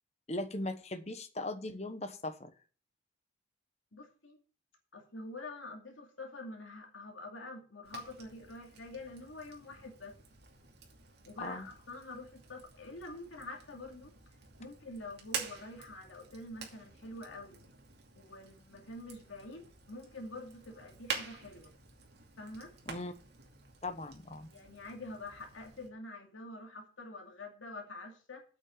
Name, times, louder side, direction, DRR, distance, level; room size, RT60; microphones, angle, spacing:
voice 1, 0.3-2.5 11.4-11.7 22.9-23.1 23.8-24.5, left 2 dB, 35° left, 9 dB, 1.1 m, -39 dB
voice 2, 3.9-4.4 4.9-10.2 11.2-14.1 14.6-17.6 18.2-21.7 22.4-22.7 24.5-28.4, left 2 dB, 75° left, 2 dB, 2.5 m, -46 dB
Fire, 7.8-25.9, right 5 dB, 55° right, 2.5 m, -48 dB
8.8 x 6.1 x 7.8 m, 0.39 s
head